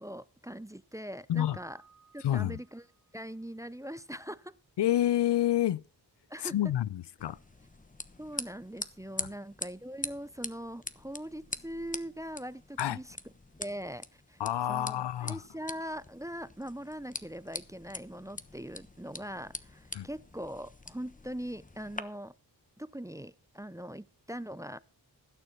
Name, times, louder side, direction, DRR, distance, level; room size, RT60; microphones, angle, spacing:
voice 1, 0.0-1.8 2.1-2.8 3.1-4.6 6.3-6.5 8.2-13.1 13.6-14.4 14.7-22.3 22.8-24.8, equal, 10° right, 0.5 m, -41 dB
Keyboard (musical), 1.4-3.2, right 5 dB, 40° right, 1.4 m, -59 dB
voice 2, 2.2-2.6 4.8-5.8 6.4-7.4 9.2-9.3 12.8-13.0 14.4-15.4 19.9-20.1, left 12 dB, 75° left, 0.5 m, -28 dB
sound 1, 7.2-22.0, left 2 dB, 20° left, 1.0 m, -44 dB
16.0 x 6.7 x 5.9 m
cardioid pair, 40°, 42 cm